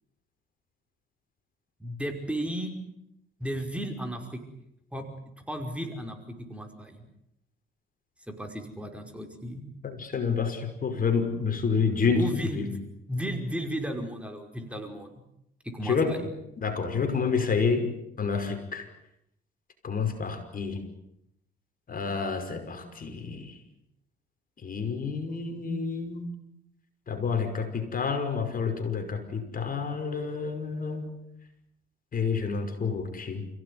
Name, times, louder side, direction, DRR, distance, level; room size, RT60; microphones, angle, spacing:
voice 1, 1.8-2.7 3.4-4.4 4.9-5.1 5.5-7.0 8.3-9.6 12.2-12.8 13.1-15.2 15.6-16.2, equal, 5° right, 4 dB, 5.3 m, -34 dB
voice 2, 9.8-12.3 12.5-12.7 15.8-16.2 16.6-18.9 19.8-20.8 21.9-23.5 24.6-26.3 27.1-31.1 32.1-33.5, left 5 dB, 45° left, 6 dB, 5.6 m, -29 dB
30.0 x 17.5 x 9.8 m, 0.80 s
cardioid pair, 90°, 20 cm